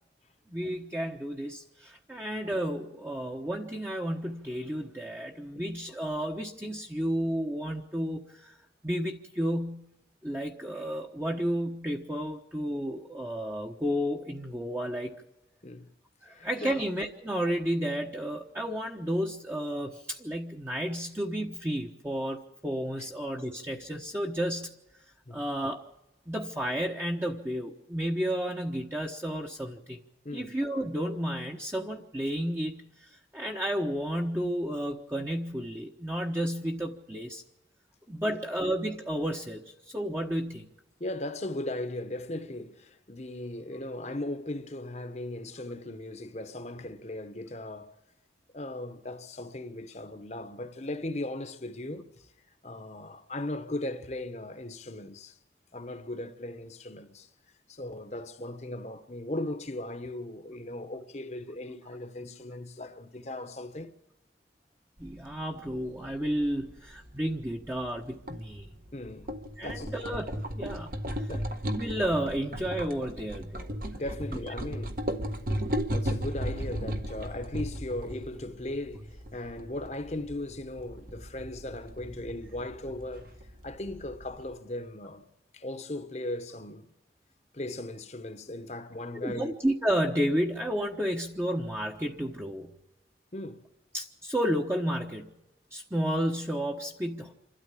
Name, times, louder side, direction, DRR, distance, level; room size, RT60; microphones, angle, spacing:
voice 1, 0.5-8.6 8.8-9.9 10.2-15.2 16.2-24.7 25.3-25.8 26.3-30.0 30.3-37.4 38.1-40.7 65.0-68.7 69.6-71.2 71.7-73.8 89.2-92.7 93.9-95.3 95.7-97.3, equal, 15° right, 1.1 m, -32 dB
voice 2, 16.2-16.8 25.3-25.4 30.2-30.5 38.2-38.4 41.0-48.0 48.5-52.1 52.6-55.4 55.7-57.3 57.7-63.9 68.9-69.3 69.6-70.0 71.3-71.5 73.9-75.0 75.9-83.3 83.6-85.3 85.5-86.9 87.5-89.5 93.3-93.7, left 1 dB, 40° left, 1.2 m, -38 dB
sound 1, 65.0-84.5, equal, 50° right, 1.6 m, -36 dB
27.5 x 13.0 x 8.5 m
head